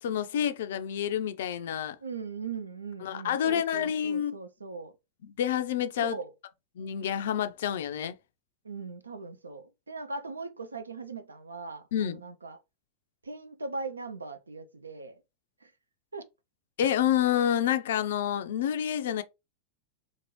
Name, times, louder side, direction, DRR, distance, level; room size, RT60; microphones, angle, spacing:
voice 1, 0.0-2.0 3.0-4.4 5.2-6.2 6.8-8.1 11.9-12.2 16.8-19.2, left 10 dB, 60° left, 0.3 m, -28 dB
voice 2, 2.0-4.9 6.0-6.3 8.6-12.6 13.2-15.2 15.6-15.7 16.1-16.3, right 4 dB, 75° right, 0.4 m, -39 dB
2.6 x 2.6 x 3.0 m
figure-of-eight pair, 90°, 0 cm